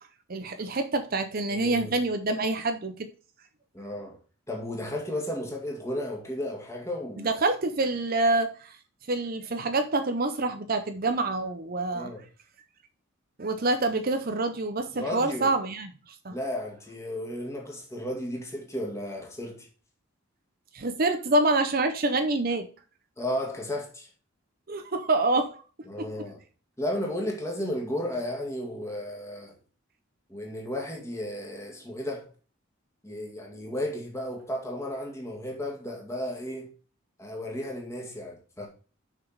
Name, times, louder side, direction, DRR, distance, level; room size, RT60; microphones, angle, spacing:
voice 1, 0.3-3.1 7.2-8.7 9.1-12.1 13.4-16.4 20.7-22.7 24.7-25.5 26.0-26.1, right 2 dB, 45° right, 0.7 m, -26 dB
voice 2, 1.5-2.0 3.7-4.2 4.5-7.3 11.9-12.3 14.9-15.5 16.3-19.7 23.2-24.1 25.9-26.4 26.8-29.6 30.3-32.3 33.0-36.7 37.2-38.7, left 1 dB, 15° left, 2.0 m, -34 dB
6.4 x 5.9 x 4.7 m
head